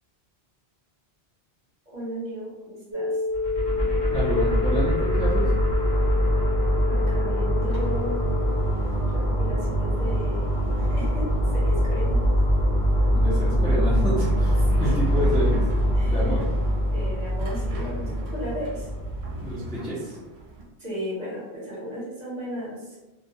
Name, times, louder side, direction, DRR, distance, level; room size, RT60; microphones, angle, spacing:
voice 1, 1.9-3.2 6.9-8.2 9.1-10.4 10.8-12.2 14.7-14.9 15.9-16.4 16.9-18.9 20.8-23.0, equal, 45° right, -7 dB, 1.0 m, -35 dB
sound 1, 2.9-8.7, left 4 dB, 20° right, 0.8 m, -30 dB
sound 2, 3.3-19.5, equal, 50° left, 0.8 m, -23 dB
voice 2, 4.1-5.5 13.1-15.6 16.0-16.4 19.4-20.2, equal, 5° left, -8 dB, 0.5 m, -28 dB
sound 3, 7.6-20.6, right 2 dB, 75° right, 0.8 m, -39 dB
2.3 x 2.2 x 2.6 m, 1.1 s
omnidirectional pair, 1.1 m